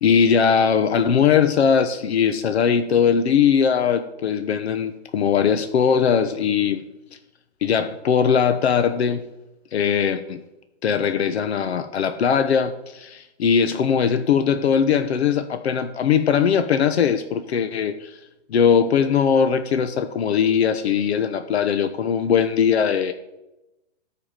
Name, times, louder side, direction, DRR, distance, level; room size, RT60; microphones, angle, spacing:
voice 1, 0.0-6.8 7.6-9.2 9.7-10.4 10.8-18.2 18.5-23.1, left 7 dB, 70° left, 10 dB, 1.0 m, -20 dB
13.5 x 4.8 x 8.9 m, 0.95 s
hypercardioid pair, 175°, 34 cm